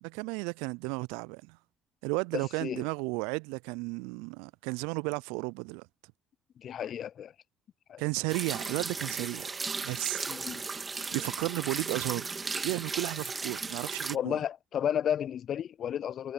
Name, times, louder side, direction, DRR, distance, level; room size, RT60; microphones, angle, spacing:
voice 1, 0.0-1.6 2.0-5.9 8.0-9.5 9.8-10.2 11.1-12.3 12.6-14.4, right 30 dB, 75° right, 0.3 m, -33 dB
voice 2, 2.3-2.8 6.6-7.3 7.9-8.0 10.3-10.6 14.1-16.3, left 9 dB, 55° left, 0.4 m, -32 dB
sound 1, 8.3-14.2, right 4 dB, 30° right, 2.6 m, -36 dB
hypercardioid pair, 55°, 0 cm